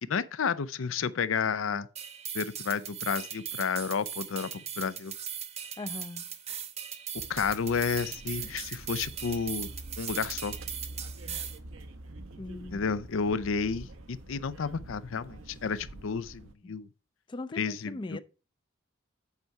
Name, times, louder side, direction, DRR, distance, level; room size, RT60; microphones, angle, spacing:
voice 1, 0.0-1.9 2.3-5.1 7.3-9.7 10.0-10.6 12.7-16.9 17.6-18.2, left 6 dB, 75° left, 0.5 m, -31 dB
sound 1, 2.0-11.6, right 8 dB, 35° right, 0.8 m, -39 dB
voice 2, 5.8-6.3 11.2-11.4 12.3-12.8 16.6-16.8 17.3-18.2, left 2 dB, 25° left, 0.4 m, -40 dB
sound 2, 7.2-16.5, right 1 dB, 85° right, 0.8 m, -46 dB
8.1 x 4.5 x 4.8 m
head